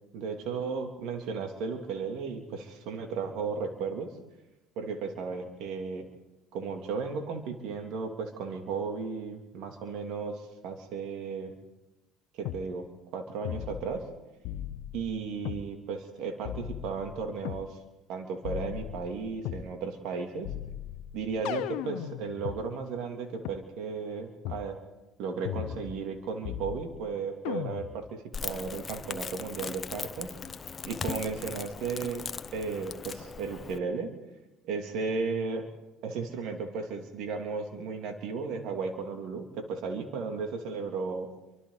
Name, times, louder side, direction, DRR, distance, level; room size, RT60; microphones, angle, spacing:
voice 1, 0.1-4.1 4.8-6.0 6.5-11.5 12.4-12.8 13.1-14.0 14.9-17.8 18.1-20.5 21.1-24.8 25.2-30.3 30.8-32.3 32.5-34.1 34.6-35.6 36.0-41.3, right 5 dB, 70° right, 4 dB, 3.0 m, -35 dB
sound 1, 12.4-12.6 13.4-14.1 14.4-15.6 16.4-17.7 18.4-19.7 20.4-22.6 23.4-23.5 24.4-24.7 25.4-26.1 26.4-27.1 27.4-28.1, left 12 dB, 75° left, 0.8 m, -37 dB
Crackle, 28.3-33.8, left 5 dB, 35° left, 1.0 m, -39 dB
28.5 x 24.5 x 4.1 m, 1.0 s
hypercardioid pair, 70°, 0 cm